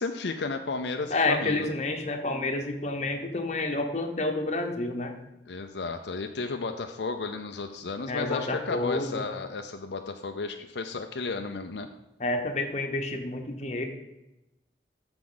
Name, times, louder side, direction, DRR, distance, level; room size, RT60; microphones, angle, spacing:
voice 1, 0.0-1.7 5.5-11.9, left 3 dB, 70° left, 5 dB, 0.5 m, -33 dB
voice 2, 1.1-5.1 8.1-9.2 12.2-13.8, left 2 dB, 40° left, 4 dB, 1.0 m, -29 dB
13.5 x 4.9 x 4.0 m, 0.94 s
head